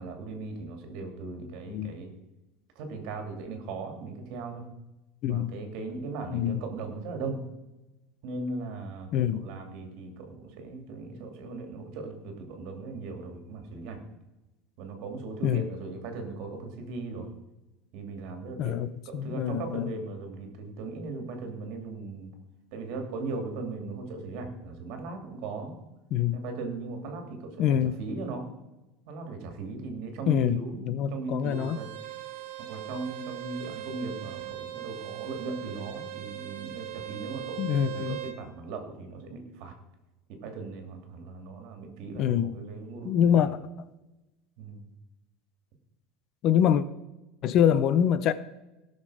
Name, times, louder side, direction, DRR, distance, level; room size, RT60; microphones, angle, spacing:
voice 1, 0.0-2.1 2.8-4.7 5.3-7.4 8.2-14.0 14.8-17.3 17.9-18.8 19.1-22.3 22.7-25.8 26.3-28.5 29.1-31.9 32.6-39.7 40.3-43.4 44.6-44.9, right 3 dB, 55° right, 4 dB, 2.5 m, -38 dB
voice 2, 9.1-9.4 15.4-15.7 18.6-18.9 19.1-19.9 26.1-26.4 27.6-27.9 30.3-31.8 37.6-38.2 42.1-42.5 43.0-43.6 46.4-46.8 47.4-48.3, left 9 dB, 40° left, 14 dB, 0.5 m, -25 dB
Bowed string instrument, 31.4-38.4, right 14 dB, 80° right, 1.3 m, -40 dB
17.0 x 6.6 x 4.9 m, 1.0 s
cardioid pair, 165°, 0 cm